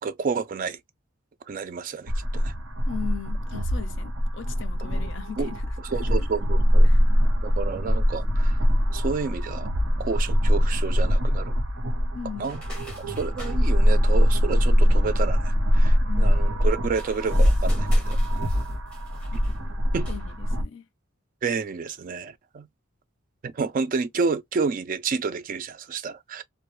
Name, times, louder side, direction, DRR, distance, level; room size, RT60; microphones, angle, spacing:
voice 1, 0.0-0.8 1.5-2.5 5.4-5.5 5.9-6.9 7.4-8.6 8.9-9.7 10.0-11.6 12.4-12.6 13.1-18.2 19.3-19.4 19.9-20.1 21.4-22.7 23.4-26.4, right 5 dB, 40° right, 0.3 m, -30 dB
sound 1, 2.1-20.6, equal, 90° right, 0.8 m, -22 dB
voice 2, 2.9-6.3 6.8-7.0 12.1-12.6 16.0-16.4 20.1-20.9 23.6-23.7, left 7 dB, 60° left, 0.4 m, -39 dB
sound 2, 12.4-13.6 16.8-19.6 20.0-20.3, left 1 dB, 5° left, 0.7 m, -46 dB
2.2 x 2.0 x 2.9 m
head